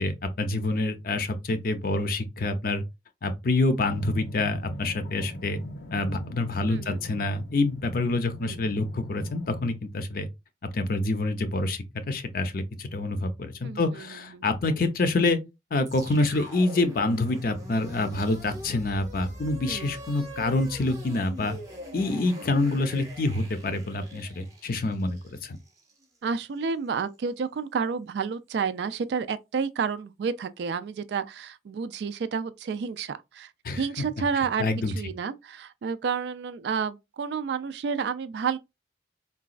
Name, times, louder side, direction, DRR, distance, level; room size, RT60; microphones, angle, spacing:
voice 1, 0.0-2.8 3.2-5.6 5.9-10.3 10.7-15.4 15.7-21.6 21.9-25.6 33.6-33.8 34.6-34.9, left 2 dB, 50° left, 0.5 m, -27 dB
sound 1, 3.9-9.7, equal, 90° left, 0.7 m, -41 dB
voice 2, 6.7-7.0 8.4-8.6 13.6-14.4 19.7-20.0 26.2-38.6, right 5 dB, 70° right, 0.3 m, -30 dB
sound 2, 15.8-26.0, equal, 20° right, 0.7 m, -42 dB
3.9 x 2.3 x 2.4 m
head